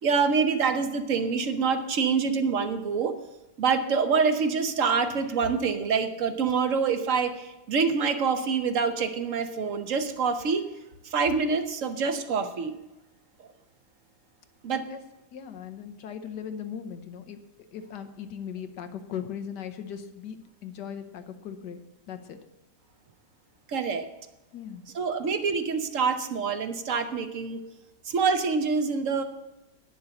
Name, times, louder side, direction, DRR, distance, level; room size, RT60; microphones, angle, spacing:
voice 1, 0.0-3.1 3.6-10.6 11.0-12.7 13.4-13.5 14.6-14.8 23.7-24.1 24.9-27.6 28.0-29.2, right 5 dB, 55° right, 9 dB, 1.1 m, -26 dB
voice 2, 15.3-17.4 17.7-21.8 22.1-22.4 24.5-24.8, left 8 dB, 85° left, 7 dB, 1.5 m, -38 dB
10.5 x 6.9 x 6.9 m, 1.0 s
omnidirectional pair, 1.8 m